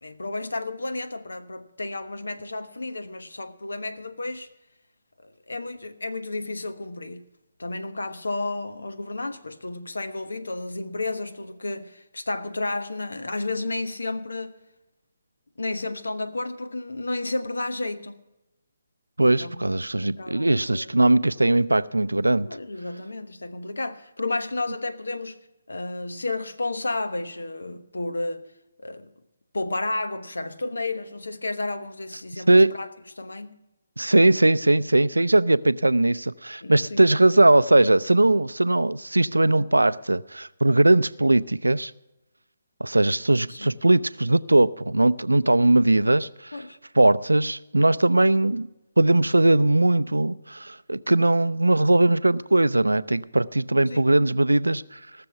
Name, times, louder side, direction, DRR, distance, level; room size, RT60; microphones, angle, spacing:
voice 1, 0.0-4.5 5.5-7.2 7.6-14.5 15.6-18.2 19.2-19.7 20.0-21.0 22.4-25.4 25.7-28.4 28.8-29.1 29.5-32.9 33.2-33.5 36.6-37.0 43.5-43.7 46.5-46.8 53.9-54.1, left 2 dB, 75° left, 1.1 m, -32 dB
voice 2, 19.2-22.5 32.5-32.7 34.0-41.9 42.8-46.5 47.0-48.7 49.0-55.0, right 2 dB, 85° right, 0.4 m, -20 dB
18.0 x 6.9 x 5.7 m
figure-of-eight pair, 145°, 0 cm